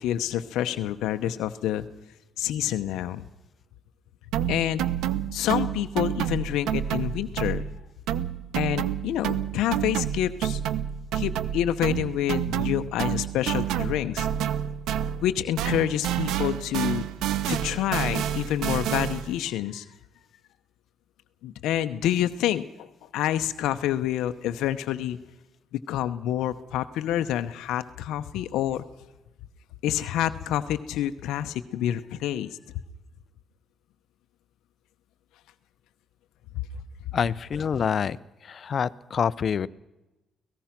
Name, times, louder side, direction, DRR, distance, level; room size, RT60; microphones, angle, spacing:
voice 1, 0.0-1.8 2.4-3.2 4.5-4.8 5.3-7.7 8.5-10.6 11.1-14.3 15.2-17.1 17.5-19.8 21.4-25.2 25.9-28.8 29.8-32.6, left 12 dB, 90° left, 8 dB, 0.9 m, -28 dB
sound 1, 4.3-7.8 8.1-15.3 15.6-19.4, right 10 dB, 90° right, 0.9 m, -29 dB
voice 2, 37.1-38.2 38.4-39.7, left 7 dB, 50° left, 18 dB, 0.7 m, -26 dB
24.5 x 18.0 x 6.0 m, 1.0 s
cardioid pair, 90°, 0 cm